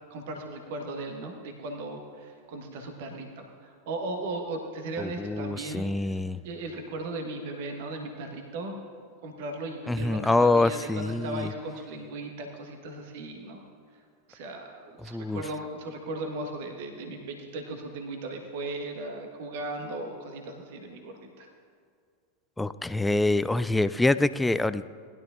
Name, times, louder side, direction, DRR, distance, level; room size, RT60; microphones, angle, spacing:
voice 1, 0.1-6.2 6.4-8.8 9.2-13.6 14.3-21.5, right 2 dB, 50° right, 3 dB, 1.4 m, -37 dB
voice 2, 5.0-6.4 9.9-11.5 15.0-15.4 22.6-24.9, left 2 dB, 5° left, 14 dB, 0.3 m, -25 dB
19.0 x 12.0 x 2.5 m, 2.1 s
figure-of-eight pair, 90°, 0 cm